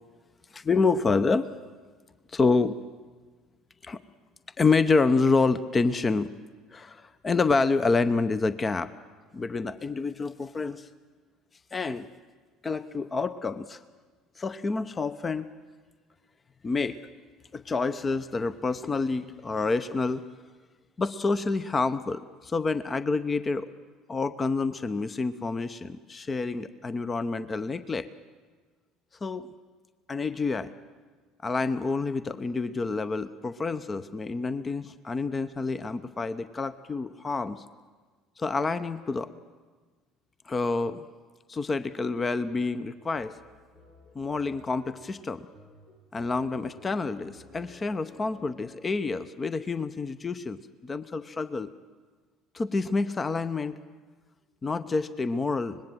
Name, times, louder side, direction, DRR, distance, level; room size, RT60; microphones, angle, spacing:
voice 1, 0.5-1.5 2.3-2.8 3.8-4.0 4.6-6.3 6.7-8.9 9.3-10.9 11.7-12.1 12.6-13.8 14.4-15.5 16.6-17.0 17.5-20.2 21.0-23.7 24.1-28.1 29.2-29.5 30.1-30.7 31.4-37.6 38.4-39.3 40.5-41.0 41.5-43.3 44.1-45.5 46.1-51.7 52.5-53.8 54.6-55.8, left 4 dB, 25° left, 13 dB, 0.7 m, -28 dB
sound 1, 42.5-49.0, left 1 dB, 70° left, 7.2 m, -54 dB
25.0 x 20.0 x 7.5 m, 1.4 s
figure-of-eight pair, 65°, 0 cm